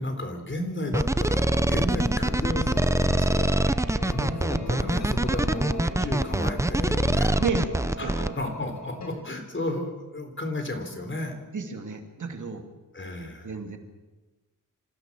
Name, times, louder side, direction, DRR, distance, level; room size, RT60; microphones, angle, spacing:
voice 1, 0.0-3.5 4.1-7.4 8.0-11.4 12.9-13.5, left 1 dB, 35° left, 5 dB, 4.0 m, -33 dB
sound 1, 0.9-8.3, right 1 dB, 10° right, 0.6 m, -24 dB
sound 2, 1.2-9.1, left 2 dB, 60° left, 5.9 m, -38 dB
sound 3, 2.6-8.2, right 4 dB, 90° right, 4.1 m, -46 dB
voice 2, 7.4-7.7 8.0-8.3 11.5-12.7 13.4-13.8, right 5 dB, 65° right, 4 dB, 2.7 m, -32 dB
26.5 x 16.0 x 7.6 m, 1.2 s
wide cardioid pair, 115°, 32 cm